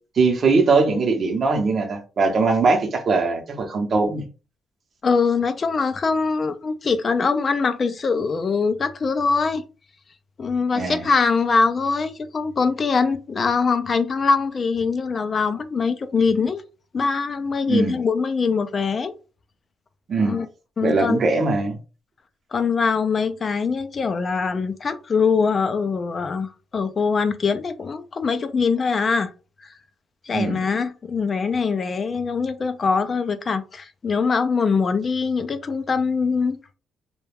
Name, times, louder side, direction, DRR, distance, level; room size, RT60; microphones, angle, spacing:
voice 1, 0.2-4.3 10.7-11.1 17.7-18.0 20.1-20.4 20.8-21.8 30.3-30.6, right 4 dB, 50° right, 0.7 m, -21 dB
voice 2, 5.0-9.6 10.4-16.6 16.9-19.1 20.2-20.5 20.8-21.2 22.5-29.3 29.6-29.7 30.2-36.6, left 5 dB, 40° left, 0.3 m, -23 dB
2.3 x 2.2 x 3.3 m
cardioid pair, 90°, 0 cm